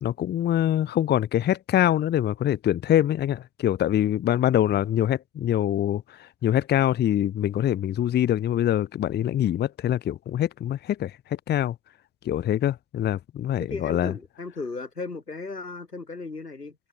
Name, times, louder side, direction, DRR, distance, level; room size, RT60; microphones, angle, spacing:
voice 1, 0.0-11.7 12.2-14.1, left 11 dB, 20° left, 1.1 m, -24 dB
voice 2, 13.6-16.8, left 3 dB, 85° left, 5.3 m, -35 dB
open air
figure-of-eight pair, 90°, 46 cm